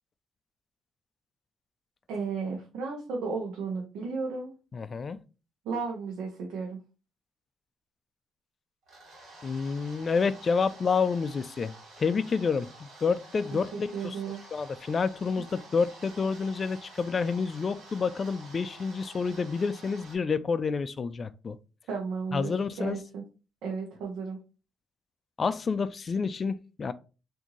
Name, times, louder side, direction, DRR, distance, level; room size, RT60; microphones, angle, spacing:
voice 1, 2.1-4.5 5.6-6.8 13.5-14.4 21.9-22.5 22.8-23.2 23.6-24.4, right 4 dB, 90° right, 0.8 m, -34 dB
voice 2, 4.7-5.2 9.4-14.2 14.5-21.6 22.3-23.0 25.4-26.9, left 5 dB, 40° left, 0.3 m, -29 dB
sound 1, 8.8-20.2, right 2 dB, 65° right, 1.3 m, -50 dB
3.6 x 2.6 x 3.0 m
cardioid pair, 90°, 0 cm